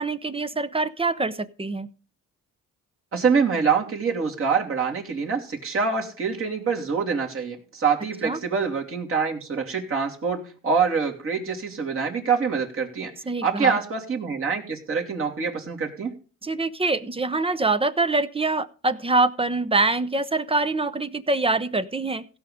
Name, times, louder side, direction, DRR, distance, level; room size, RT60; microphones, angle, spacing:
voice 1, 0.0-1.9 8.2-8.4 13.3-13.8 16.4-22.3, right 3 dB, 20° right, 0.8 m, -24 dB
voice 2, 3.1-13.1 13.4-16.1, right 5 dB, 45° right, 2.9 m, -25 dB
16.5 x 5.7 x 5.0 m
cardioid pair, 90°, 30 cm